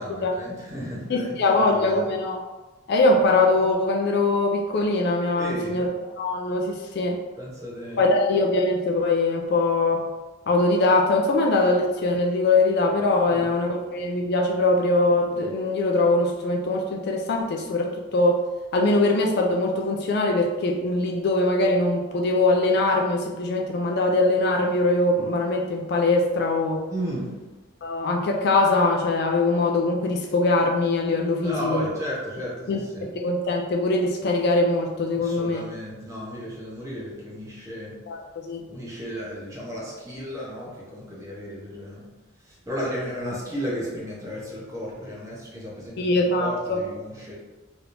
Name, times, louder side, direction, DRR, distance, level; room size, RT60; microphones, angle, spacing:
voice 1, 0.0-2.1 5.4-5.9 7.4-8.0 13.2-13.5 26.9-27.3 31.4-33.1 35.1-37.9 38.7-42.1 42.4-47.4, equal, 15° right, -6 dB, 0.8 m, -34 dB
voice 2, 1.1-2.4 2.9-5.9 6.2-7.2 8.0-10.0 10.5-18.4 18.7-26.8 27.8-31.9 32.7-35.6 38.1-38.2 38.4-38.6 46.0-46.8, left 2 dB, 50° left, 1 dB, 0.3 m, -22 dB
3.3 x 2.9 x 2.6 m, 1.2 s
head